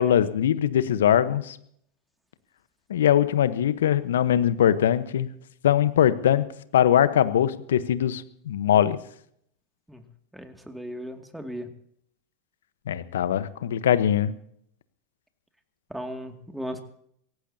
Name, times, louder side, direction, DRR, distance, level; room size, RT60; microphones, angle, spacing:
voice 1, 0.0-1.6 2.9-5.3 5.6-6.4 6.7-9.0 12.9-14.3, left 10 dB, 75° left, 14 dB, 1.1 m, -21 dB
voice 2, 10.3-11.7 15.9-16.8, equal, 5° right, 5 dB, 2.4 m, -36 dB
23.5 x 18.0 x 2.8 m, 0.67 s
hypercardioid pair, 90°, 0 cm